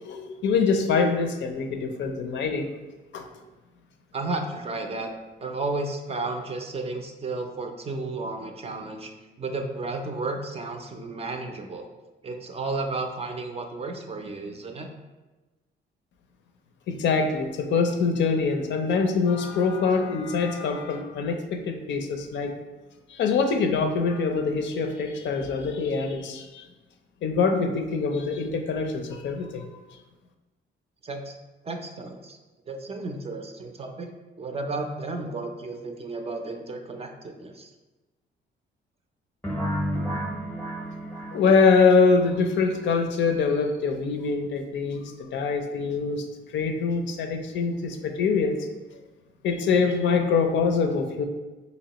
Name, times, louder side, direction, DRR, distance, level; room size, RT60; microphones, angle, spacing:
voice 1, 0.0-2.7 3.1-3.3 16.9-22.5 23.1-26.7 27.2-29.7 41.3-46.3 46.5-48.6 49.4-51.3, left 4 dB, 65° left, 6 dB, 0.5 m, -24 dB
voice 2, 4.1-5.1 5.4-9.1 9.4-11.9 12.2-14.9 31.0-31.4 31.6-32.4 32.7-34.1 34.4-37.7, right 3 dB, 30° right, 4 dB, 0.4 m, -33 dB
sound 1, 39.4-42.3, equal, 10° left, 0.7 m, -31 dB
4.1 x 2.9 x 2.9 m, 1.2 s
cardioid pair, 90°, 20 cm